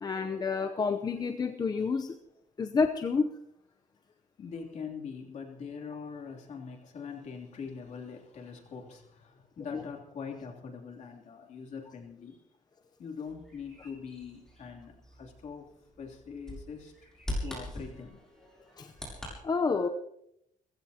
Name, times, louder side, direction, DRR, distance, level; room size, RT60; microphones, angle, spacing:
voice 1, 0.0-2.2 2.6-3.3 9.7-9.8 18.8-18.9 19.4-19.9, left 5 dB, 30° left, 6 dB, 0.7 m, -29 dB
voice 2, 4.4-12.4 13.0-15.7 16.0-17.1 17.4-18.2, left 6 dB, 55° left, 0 dB, 3.0 m, -43 dB
Bird vocalization bird call bird song, 13.3-19.3, left 1 dB, 5° left, 7.6 m, -42 dB
29.5 x 15.5 x 2.9 m, 0.77 s
cardioid pair, 150°, 14 cm